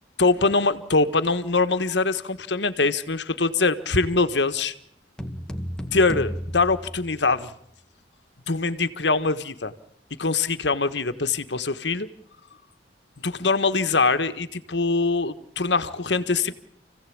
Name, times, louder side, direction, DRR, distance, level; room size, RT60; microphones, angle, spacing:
voice 1, 0.2-4.7 5.9-7.5 8.5-9.7 10.2-12.1 13.2-16.5, left 3 dB, 70° left, 11 dB, 1.5 m, -23 dB
sound 1, 5.2-7.7, equal, 5° left, 2.0 m, -34 dB
29.5 x 17.0 x 8.8 m, 0.69 s
head